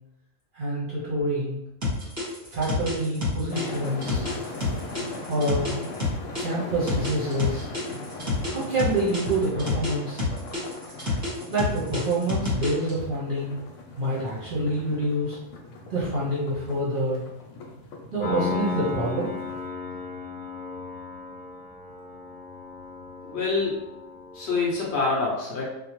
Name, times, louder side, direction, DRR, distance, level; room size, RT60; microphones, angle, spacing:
voice 1, 0.5-1.6 2.5-4.3 5.3-5.7 6.4-7.7 8.5-10.2 11.5-13.5 14.0-15.4 15.9-17.2 18.1-19.3, right 1 dB, 50° right, -7 dB, 0.7 m, -27 dB
sound 1, 1.8-6.4 6.9-9.9 10.2-12.9, left 3 dB, 15° right, 0.8 m, -28 dB
sound 2, 3.5-19.6, left 2 dB, 90° left, 1.0 m, -40 dB
Piano, 18.2-24.9, left 4 dB, 10° left, 0.5 m, -35 dB
voice 2, 23.2-23.8 24.3-25.6, left 3 dB, 60° left, -4 dB, 0.8 m, -26 dB
2.6 x 2.0 x 3.0 m, 0.91 s
omnidirectional pair, 1.4 m